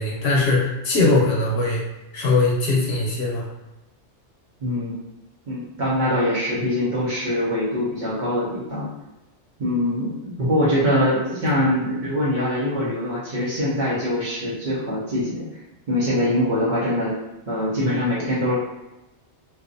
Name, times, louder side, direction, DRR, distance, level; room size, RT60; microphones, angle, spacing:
voice 1, 0.0-1.8 2.1-3.5 11.3-11.4, left 2 dB, 70° left, -3 dB, 0.9 m, -21 dB
voice 2, 4.6-4.9 5.5-8.9 9.6-15.4 15.9-17.1 17.5-18.5, left 1 dB, 50° right, -8 dB, 0.7 m, -23 dB
2.5 x 2.0 x 2.5 m, 1.0 s
omnidirectional pair, 1.2 m